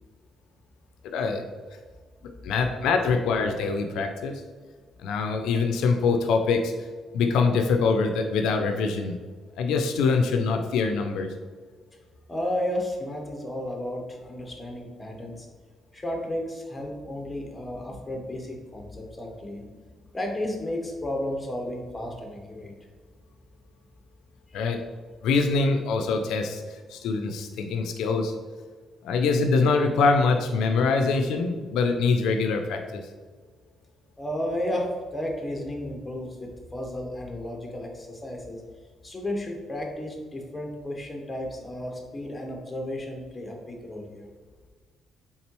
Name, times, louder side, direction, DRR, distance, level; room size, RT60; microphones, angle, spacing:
voice 1, 1.0-1.4 2.2-4.4 5.0-6.7 7.1-9.2 9.6-11.3 24.5-24.8 25.2-28.3 29.0-33.0, left 4 dB, 85° left, 5 dB, 0.4 m, -24 dB
voice 2, 12.3-15.5 15.9-19.7 20.1-22.7 24.5-24.6 34.2-38.6 39.0-44.3, left 1 dB, 20° left, 1 dB, 0.9 m, -33 dB
4.2 x 3.6 x 3.0 m, 1.5 s
cardioid pair, 90°, 0 cm